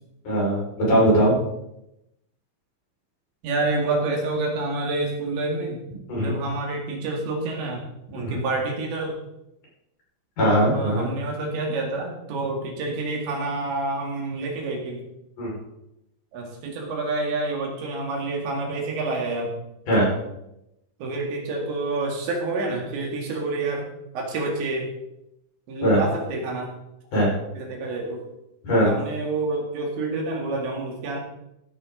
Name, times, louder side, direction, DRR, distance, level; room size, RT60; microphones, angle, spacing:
voice 1, 0.2-1.4 6.1-6.3 8.2-8.4 10.4-11.1 15.4-15.6 19.9-20.1 25.8-26.0 27.1-27.3 28.6-28.9, right 1 dB, 45° left, -5 dB, 6.3 m, -20 dB
voice 2, 3.4-5.8 6.2-9.2 10.6-15.0 16.3-19.5 21.0-23.9 24.1-24.9 25.7-26.7 27.5-28.2 28.7-31.2, right 2 dB, 70° right, 0 dB, 4.4 m, -28 dB
16.5 x 10.5 x 3.9 m, 0.86 s
omnidirectional pair, 5.4 m